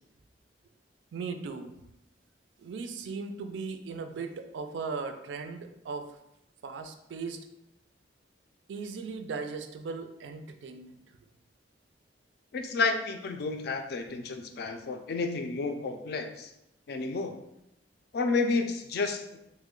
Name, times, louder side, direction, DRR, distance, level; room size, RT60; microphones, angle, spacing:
voice 1, 1.1-1.7 2.6-6.1 6.6-7.4 8.7-11.0, right 4 dB, 85° right, 7 dB, 0.4 m, -38 dB
voice 2, 12.5-16.5 16.9-17.4 18.1-19.4, left 3 dB, 60° left, 6 dB, 0.4 m, -31 dB
3.1 x 2.1 x 3.6 m, 0.83 s
head